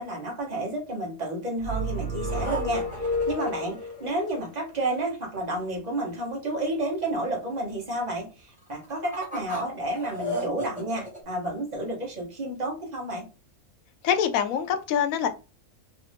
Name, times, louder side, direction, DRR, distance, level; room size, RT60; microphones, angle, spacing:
voice 1, 0.0-13.2, right 1 dB, 35° right, 0 dB, 0.9 m, -31 dB
sound 1, 1.6-4.0, left 1 dB, 45° left, 1.0 m, -30 dB
sound 2, 2.3-4.5 8.6-11.2, equal, 5° right, 1.4 m, -35 dB
voice 2, 14.0-15.3, left 8 dB, 75° left, 8 dB, 1.0 m, -24 dB
3.1 x 2.5 x 3.3 m, 0.32 s
omnidirectional pair, 1.5 m